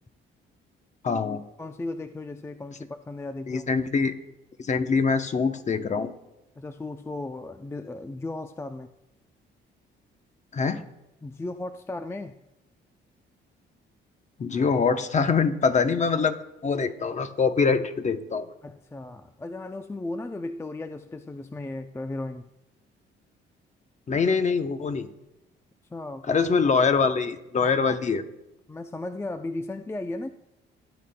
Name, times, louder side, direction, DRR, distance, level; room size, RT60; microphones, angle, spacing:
voice 1, 1.0-1.4 3.5-4.1 4.6-6.1 10.5-10.8 14.4-16.4 16.6-18.5 24.1-25.1 26.3-28.2, left 5 dB, 35° left, 9 dB, 0.8 m, -24 dB
voice 2, 1.6-3.7 6.6-8.9 11.2-12.4 18.6-22.5 25.9-26.4 27.6-28.0 28.7-30.3, left 2 dB, 15° left, 8 dB, 0.4 m, -36 dB
16.5 x 8.6 x 2.2 m, 0.93 s
cardioid pair, 90°, 20 cm